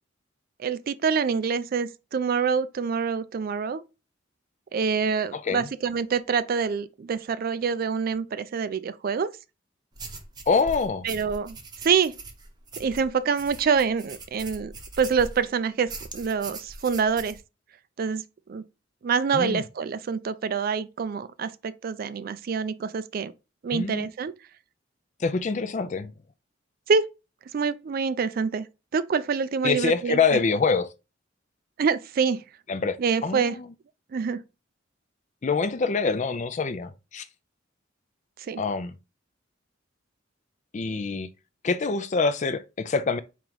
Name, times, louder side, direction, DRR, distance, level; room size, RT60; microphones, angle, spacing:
voice 1, 0.6-3.8 4.7-9.3 11.0-11.6 11.8-12.1 12.8-17.4 18.0-18.2 18.5-18.6 19.0-23.3 23.6-24.3 26.9-27.0 27.5-28.7 28.9-30.4 31.8-32.4 33.0-33.6 34.1-34.4 38.5-38.6, right 6 dB, 50° right, 0.3 m, -26 dB
voice 2, 5.3-5.7 10.5-11.1 19.3-19.6 23.7-24.1 25.2-26.1 29.6-30.9 32.7-33.0 33.2-33.7 35.4-37.3 38.6-38.9 40.7-41.3 41.6-43.2, left 4 dB, 40° left, 0.4 m, -25 dB
sound 1, 9.9-15.5 15.9-17.4, right 3 dB, 20° right, 0.8 m, -41 dB
4.6 x 2.9 x 3.8 m
head